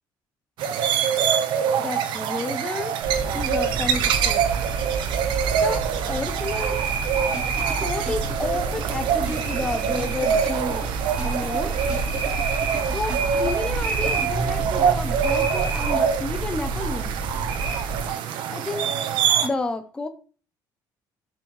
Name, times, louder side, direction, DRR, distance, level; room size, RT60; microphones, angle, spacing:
sound 1, 0.6-19.5, right 8 dB, 70° right, 1.0 m, -25 dB
voice 1, 1.8-2.9 3.3-4.6 5.6-6.8 7.8-10.8 11.2-11.8 12.9-17.2 18.5-18.9 19.4-20.1, left 2 dB, 10° left, 7 dB, 0.6 m, -30 dB
sound 2, 3.0-18.1, right 4 dB, 85° right, 2.0 m, -29 dB
sound 3, 7.3-9.0 9.3-10.9 11.2-12.8 13.1-14.7, right 1 dB, 15° right, 3.9 m, -38 dB
11.5 x 5.9 x 3.2 m, 0.38 s
cardioid pair, 175°, 8 cm